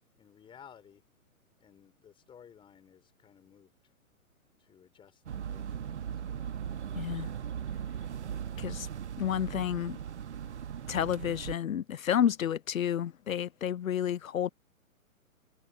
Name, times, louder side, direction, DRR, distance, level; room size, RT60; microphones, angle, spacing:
voice 1, 0.2-1.0 1.6-3.9 4.6-6.6, left 8 dB, 10° left, 4.6 m, -57 dB
sound 1, 5.3-11.6, right 8 dB, 55° right, 1.1 m, -38 dB
voice 2, 7.0-7.3 8.6-8.9 9.2-10.0 10.9-14.5, left 9 dB, 70° left, 0.5 m, -30 dB
figure-of-eight pair, 125°, 42 cm